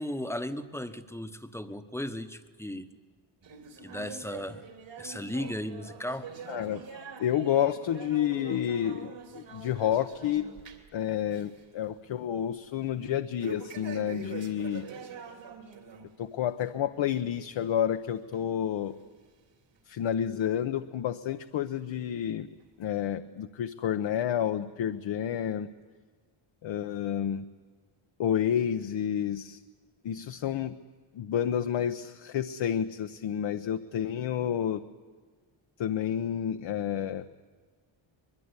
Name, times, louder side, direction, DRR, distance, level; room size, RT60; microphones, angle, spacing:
voice 1, 0.0-2.9 3.8-4.6 5.0-6.3, left 1 dB, 5° left, 8 dB, 1.1 m, -36 dB
sound 1, 3.4-11.0 11.3-11.6 12.0-12.1 13.4-16.1 16.5-16.7 17.3-17.4 18.3-18.4 19.2-19.3, right 5 dB, 60° right, 3.2 m, -44 dB
voice 2, 6.5-6.8 7.2-10.5 10.9-14.9 16.2-19.0 19.9-22.5 22.8-25.7 26.6-27.4 28.2-29.6 30.0-30.7 31.1-34.8 35.8-37.2, left 10 dB, 65° left, 7 dB, 1.0 m, -30 dB
23.5 x 21.5 x 9.7 m, 1.4 s
wide cardioid pair, 145°, 49 cm